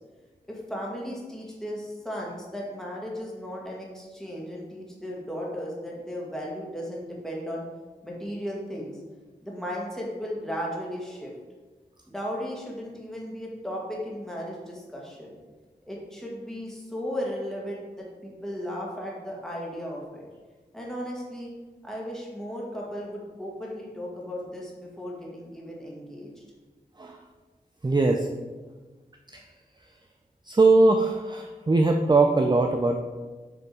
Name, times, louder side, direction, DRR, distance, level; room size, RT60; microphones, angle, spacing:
voice 1, 0.5-7.6 8.0-9.0 9.4-11.3 12.1-15.3 15.9-20.2 20.7-21.5 21.8-26.3, equal, 5° left, -4 dB, 1.7 m, -35 dB
voice 2, 27.8-28.3 29.3-29.4 30.5-33.0, right 3 dB, 25° right, 3 dB, 0.4 m, -21 dB
6.8 x 3.4 x 4.7 m, 1.3 s
wide cardioid pair, 65°, 17 cm